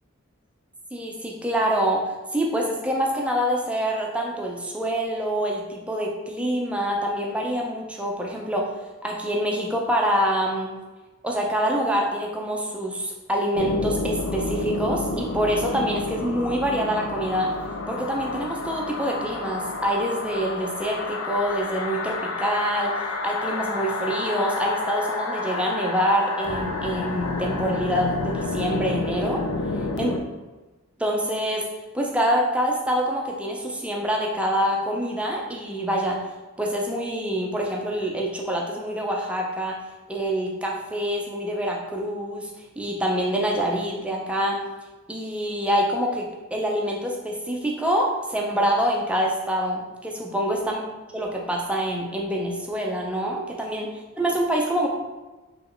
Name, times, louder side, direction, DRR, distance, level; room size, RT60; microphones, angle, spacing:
voice 1, 0.9-2.0 2.3-8.6 9.0-10.7 11.2-17.5 17.9-29.4 30.0-30.1 31.0-31.6 31.9-36.2 36.6-39.8 40.1-42.5 42.8-44.6 45.1-50.8 51.1-53.9 54.2-54.9, equal, 5° right, -1 dB, 0.5 m, -26 dB
sound 1, 13.5-30.2, left 3 dB, 85° left, 0.4 m, -30 dB
3.4 x 3.0 x 3.7 m, 1.2 s
head